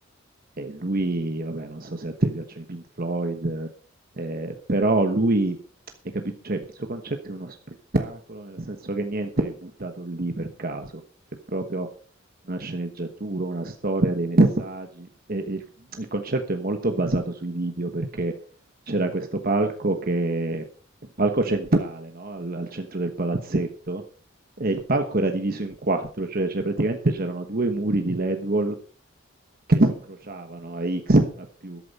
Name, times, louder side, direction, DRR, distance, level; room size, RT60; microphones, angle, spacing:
voice 1, 0.6-3.7 4.2-5.6 6.1-7.6 7.9-10.9 11.5-11.9 12.5-15.6 15.9-18.3 18.9-20.6 21.2-24.0 24.6-28.8 29.7-31.8, right 2 dB, 45° right, 6 dB, 1.2 m, -26 dB
13.5 x 12.0 x 4.2 m, 0.40 s
head